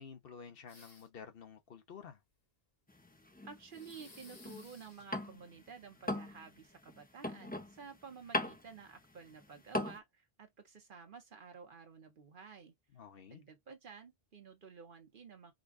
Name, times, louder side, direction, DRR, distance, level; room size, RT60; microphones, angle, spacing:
voice 1, 0.0-2.2 12.9-13.4, left 6 dB, 65° left, 1.0 m, -51 dB
sound 1, 0.7-1.3 3.7-5.0, left 2 dB, 40° left, 1.3 m, -58 dB
sound 2, 2.9-5.6 5.9-10.0, left 1 dB, 10° left, 0.5 m, -40 dB
voice 2, 3.4-12.7 13.3-15.5, right 5 dB, 60° right, 1.1 m, -52 dB
5.0 x 2.3 x 2.3 m
omnidirectional pair, 1.0 m